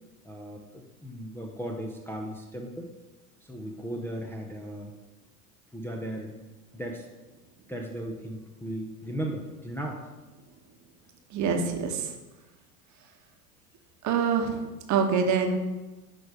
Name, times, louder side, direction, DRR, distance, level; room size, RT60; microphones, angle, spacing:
voice 1, 0.2-2.9 3.4-4.9 5.7-6.3 6.7-7.1 7.7-10.0, right 1 dB, 5° left, -1 dB, 0.7 m, -36 dB
voice 2, 11.3-12.1 14.0-14.6 14.9-15.6, right 6 dB, 40° right, 4 dB, 1.1 m, -25 dB
10.0 x 3.4 x 4.9 m, 1.1 s
hypercardioid pair, 85°, 46 cm